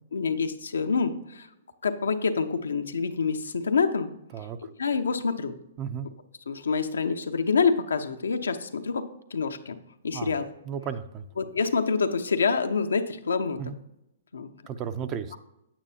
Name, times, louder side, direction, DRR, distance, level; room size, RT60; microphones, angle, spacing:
voice 1, 0.1-1.5 1.8-4.1 4.8-5.5 6.5-9.8 10.0-10.5 11.4-13.6 14.3-14.5, left 5 dB, 90° left, 7 dB, 0.8 m, -26 dB
voice 2, 10.7-11.2 13.6-13.8 14.7-15.4, right 7 dB, 30° right, 11 dB, 0.6 m, -34 dB
8.9 x 8.8 x 2.8 m, 0.86 s
hypercardioid pair, 135°, 0 cm